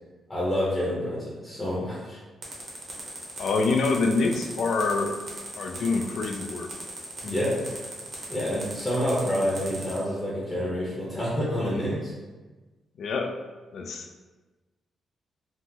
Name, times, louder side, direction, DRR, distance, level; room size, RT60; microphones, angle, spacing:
voice 1, 0.3-2.2 7.2-7.6 8.3-12.1, equal, 20° left, -7 dB, 0.7 m, -28 dB
sound 1, 2.4-10.0, right 2 dB, 45° right, 0.8 m, -39 dB
voice 2, 3.4-5.2 5.6-6.7 13.0-13.3 13.7-14.1, left 3 dB, 60° left, 3 dB, 0.3 m, -26 dB
2.8 x 2.0 x 3.5 m, 1.2 s
cardioid pair, 130°, 0 cm